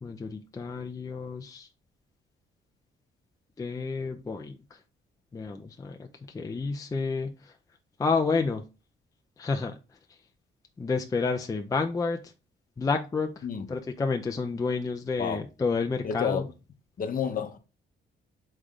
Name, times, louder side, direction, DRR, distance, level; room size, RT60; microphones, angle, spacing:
voice 1, 0.0-1.7 3.6-4.6 5.3-7.5 8.0-8.6 9.4-9.7 10.8-12.2 12.8-16.5, left 4 dB, 20° left, 0.4 m, -30 dB
voice 2, 16.0-16.5 17.0-17.6, left 7 dB, 45° left, 0.7 m, -30 dB
3.8 x 3.2 x 3.5 m
cardioid pair, 90°, 20 cm